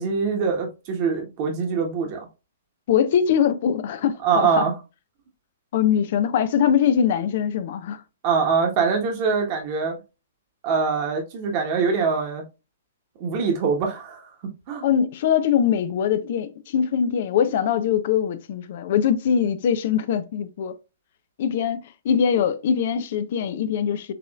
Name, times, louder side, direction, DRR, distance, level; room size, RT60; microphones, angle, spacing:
voice 1, 0.0-2.2 4.2-4.7 8.2-10.0 10.6-12.4 13.2-14.3 14.7-14.8, right 5 dB, 40° right, 1.3 m, -23 dB
voice 2, 2.9-4.7 5.7-8.0 14.8-20.7 21.4-21.8 22.0-24.1, left 8 dB, 50° left, 0.5 m, -22 dB
6.8 x 3.0 x 2.4 m
figure-of-eight pair, 115°, 0 cm